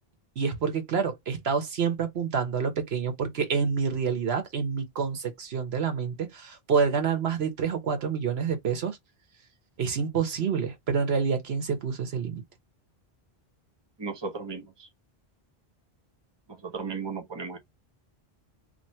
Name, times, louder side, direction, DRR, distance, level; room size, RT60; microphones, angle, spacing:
voice 1, 0.4-9.0 9.8-12.4, right 6 dB, 85° right, 1.3 m, -28 dB
voice 2, 14.0-14.9 16.5-17.6, right 5 dB, 25° right, 0.9 m, -35 dB
3.1 x 2.6 x 4.2 m
omnidirectional pair, 1.0 m